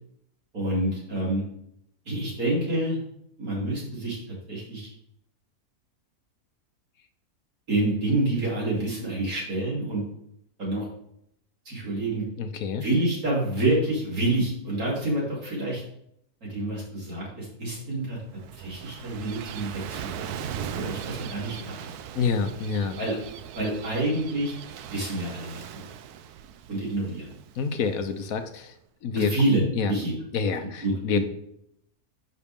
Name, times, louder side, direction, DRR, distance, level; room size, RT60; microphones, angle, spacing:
voice 1, 0.5-1.4 2.1-3.0 3.4-4.2 4.5-4.9 7.7-10.0 10.6-10.9 11.7-12.2 12.8-15.8 16.4-18.2 18.5-21.9 23.0-23.2 23.5-24.6 24.9-25.9 26.7-27.3 29.1-29.6 29.9-30.1 30.8-31.2, right 2 dB, 70° right, -5 dB, 3.7 m, -27 dB
voice 2, 12.4-12.8 22.1-23.0 27.5-28.8 29.0-29.3 29.7-29.9 30.3-31.2, left 5 dB, 70° left, 9 dB, 1.2 m, -27 dB
Gull seagull / Waves surf, 18.0-28.6, right 9 dB, 90° right, 1.1 m, -40 dB
10.0 x 5.8 x 3.6 m, 0.74 s
omnidirectional pair, 1.6 m